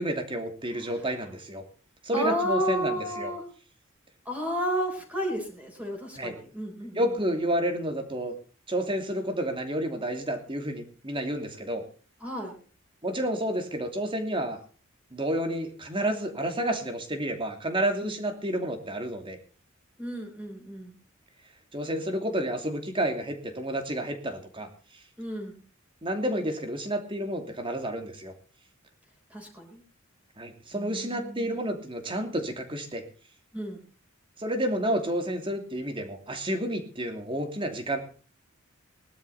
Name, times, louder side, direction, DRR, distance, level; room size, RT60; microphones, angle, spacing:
voice 1, 0.0-1.6 2.0-3.3 6.2-6.4 6.9-8.3 8.7-11.8 13.0-14.6 15.1-19.4 21.7-24.7 26.0-28.3 30.4-33.0 34.4-38.0, right 1 dB, 25° right, 5 dB, 2.7 m, -30 dB
voice 2, 0.7-1.1 2.1-3.4 4.2-7.1 12.2-12.6 18.0-18.1 20.0-21.0 25.2-25.6 29.3-29.8 30.7-31.6 33.5-33.8, equal, 5° right, -1 dB, 4.1 m, -32 dB
19.5 x 12.0 x 4.2 m, 0.40 s
head